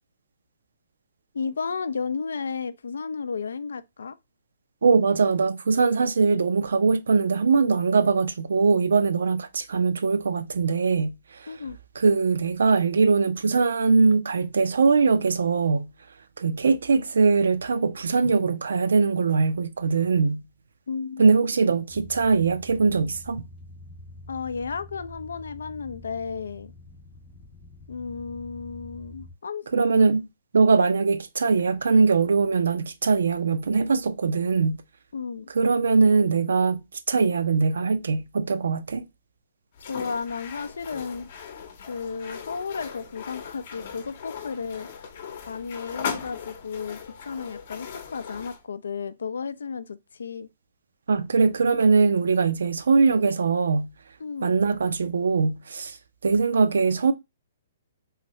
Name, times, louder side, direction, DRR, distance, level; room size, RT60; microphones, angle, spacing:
voice 1, 1.3-4.2 11.5-11.8 20.9-21.5 24.3-26.7 27.9-29.7 35.1-35.5 39.9-41.3 41.9-44.9 45.5-50.5 54.2-54.5, left 5 dB, 90° left, 0.4 m, -33 dB
voice 2, 4.8-11.5 12.0-15.9 16.4-20.4 21.2-23.5 29.7-30.3 30.5-34.8 35.5-36.8 37.1-39.1 51.1-53.9 54.4-56.0 56.2-57.1, right 4 dB, 90° right, 0.5 m, -21 dB
sound 1, 21.9-29.3, left 2 dB, 20° left, 0.5 m, -46 dB
sound 2, 39.8-48.6, left 6 dB, 50° left, 0.7 m, -39 dB
3.1 x 2.7 x 3.0 m
hypercardioid pair, 155°, 0 cm